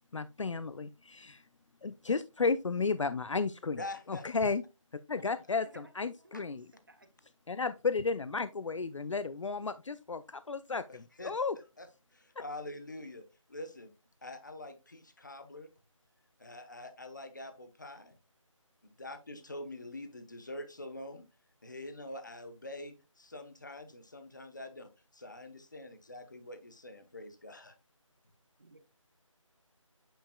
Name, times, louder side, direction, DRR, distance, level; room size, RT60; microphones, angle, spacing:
voice 1, 0.1-1.4 1.8-3.8 4.1-4.6 5.1-6.7 7.5-11.6, left 4 dB, 65° left, 0.4 m, -33 dB
voice 2, 3.8-4.3 5.1-5.2 6.3-6.4 10.9-11.3 11.8-11.9 12.1-13.9 14.2-15.7 16.4-18.2 18.8-21.3 21.6-27.7, left 1 dB, 35° left, 0.9 m, -45 dB
voice 3, 5.6-5.9 6.2-6.5 6.9-7.1 28.6-28.8, right 2 dB, 40° right, 1.0 m, -56 dB
8.8 x 5.0 x 2.2 m
figure-of-eight pair, 175°, 17 cm